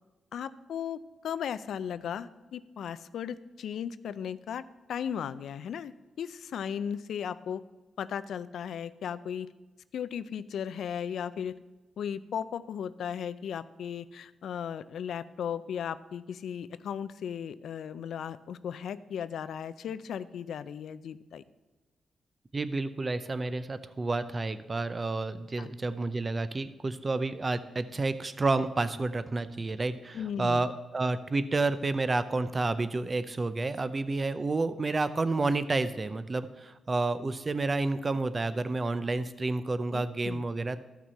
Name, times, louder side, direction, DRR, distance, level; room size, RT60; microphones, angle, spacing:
voice 1, 0.3-7.6 8.0-9.5 9.9-11.6 12.0-21.4 25.6-25.7 30.1-30.6 39.9-40.4, left 8 dB, 75° left, 15 dB, 0.4 m, -36 dB
voice 2, 22.5-40.8, right 3 dB, 30° right, 13 dB, 0.6 m, -30 dB
13.5 x 6.0 x 4.1 m, 1.2 s
cardioid pair, 80°, 0 cm